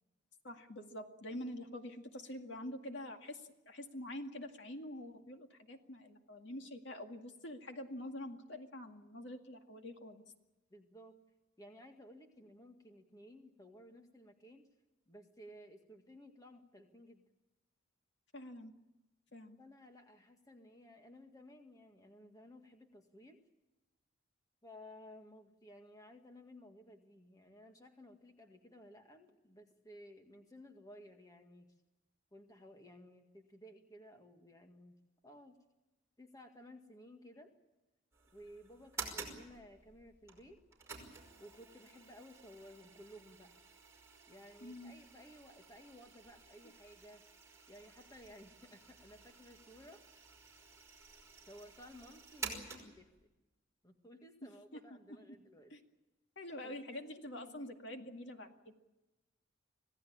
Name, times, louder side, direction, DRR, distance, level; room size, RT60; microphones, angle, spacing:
voice 1, 0.4-10.2 18.3-18.7 19.3-19.6 44.6-45.0 54.4-54.8 55.7-55.8 56.4-58.7, left 1 dB, 60° left, 5 dB, 2.1 m, -46 dB
voice 2, 10.7-11.2 11.6-14.6 15.1-17.2 19.6-23.4 24.6-31.7 32.3-34.9 35.2-35.6 36.2-37.5 38.3-40.6 41.4-43.5 44.3-47.2 47.7-50.0 51.5-53.1 53.8-55.7 56.6-57.7, equal, 20° left, 4 dB, 1.9 m, -56 dB
sound 1, 38.1-53.2, right 5 dB, 15° right, 5.5 m, -51 dB
26.5 x 17.0 x 8.7 m, 1.0 s
head